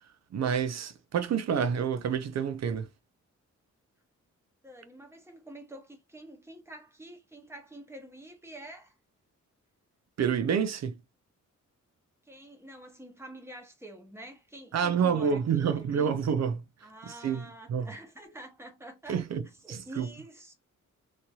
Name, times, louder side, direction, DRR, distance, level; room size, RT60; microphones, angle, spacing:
voice 1, 0.3-2.9 10.2-11.0 14.7-16.6 17.1-17.9 19.1-19.4 19.7-20.1, right 7 dB, 60° right, 0.5 m, -28 dB
voice 2, 4.6-9.0 12.2-16.1 16.8-19.2 19.6-20.5, right 1 dB, 10° right, 0.9 m, -47 dB
3.2 x 2.7 x 2.3 m
wide cardioid pair, 160°, 30 cm